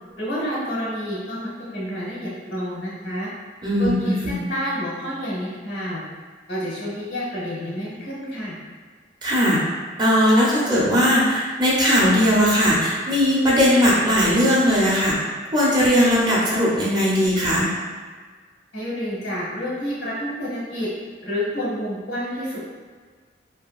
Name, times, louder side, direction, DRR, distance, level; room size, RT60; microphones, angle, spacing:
voice 1, 0.2-3.3 3.8-6.0 6.5-8.5 18.7-20.9 21.2-22.7, equal, 80° left, -6 dB, 0.9 m, -29 dB
voice 2, 3.6-4.3 9.2-9.6 10.0-15.1 15.5-17.7, equal, 25° right, -6 dB, 0.6 m, -18 dB
2.7 x 2.6 x 2.3 m, 1.5 s
head